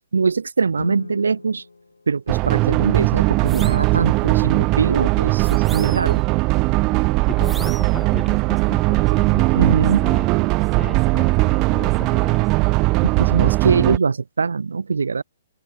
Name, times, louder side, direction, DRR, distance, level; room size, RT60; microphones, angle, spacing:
voice 1, 0.1-1.6 2.1-6.2 9.5-10.0 13.0-15.2, right 5 dB, 70° right, 4.9 m, -22 dB
Guitar, 0.7-3.3, left 3 dB, 75° left, 7.1 m, -38 dB
sound 1, 2.3-14.0, right 25 dB, 30° right, 2.1 m, -19 dB
sound 2, 3.4-3.9 5.4-6.2 7.4-8.0, right 3 dB, 5° right, 4.7 m, -39 dB
voice 2, 7.3-12.4, left 6 dB, 10° left, 5.2 m, -36 dB
open air
figure-of-eight pair, 120°, 0 cm